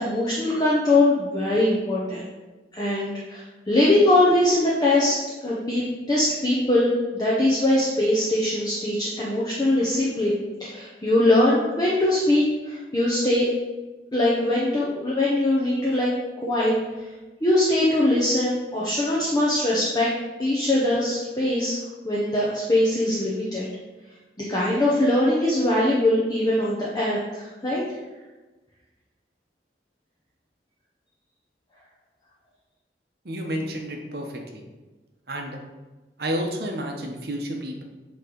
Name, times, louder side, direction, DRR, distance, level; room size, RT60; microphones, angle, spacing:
voice 1, 0.0-2.2 2.7-13.5 14.1-16.1 16.4-16.7 17.4-20.1 20.4-21.8 22.0-23.7 24.5-27.8, left 1 dB, 20° left, -6 dB, 0.8 m, -22 dB
voice 2, 33.2-34.6 35.3-35.6 36.2-37.8, equal, 60° right, 2 dB, 0.9 m, -30 dB
8.1 x 3.1 x 3.8 m, 1.2 s
head